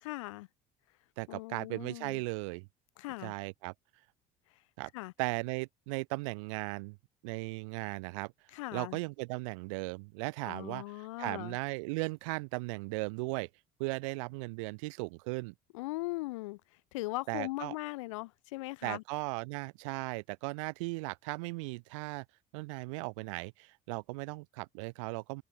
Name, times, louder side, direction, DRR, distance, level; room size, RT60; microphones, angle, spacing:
voice 1, 0.0-0.5 1.3-2.2 3.0-3.3 4.9-5.1 8.5-9.0 10.4-11.6 15.7-16.6 16.9-19.0, left 21 dB, 90° left, 6.1 m, -39 dB
voice 2, 1.2-2.7 3.2-3.7 4.8-4.9 5.2-7.0 7.2-8.3 8.7-13.5 13.8-15.5 17.3-17.7 18.8-22.3 22.5-25.4, right 27 dB, 85° right, 3.4 m, -37 dB
supercardioid pair, 80°, 16 cm